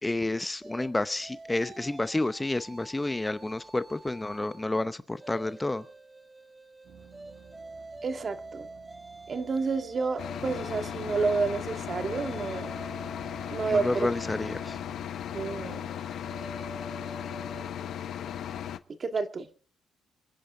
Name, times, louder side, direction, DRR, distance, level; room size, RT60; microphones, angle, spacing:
voice 1, 0.0-5.8 13.7-14.8, left 2 dB, 15° left, 0.7 m, -30 dB
sound 1, 0.6-4.7 5.1-18.6, right 2 dB, 15° right, 2.0 m, -47 dB
sound 2, 6.8-15.7, right 7 dB, 70° right, 3.8 m, -54 dB
voice 2, 8.0-8.7 9.3-12.7 13.5-14.1 15.3-15.9 19.0-19.5, right 4 dB, 40° right, 1.7 m, -30 dB
sound 3, 10.2-18.8, left 10 dB, 70° left, 0.9 m, -37 dB
28.0 x 10.5 x 3.8 m
cardioid pair, 90°, 0 cm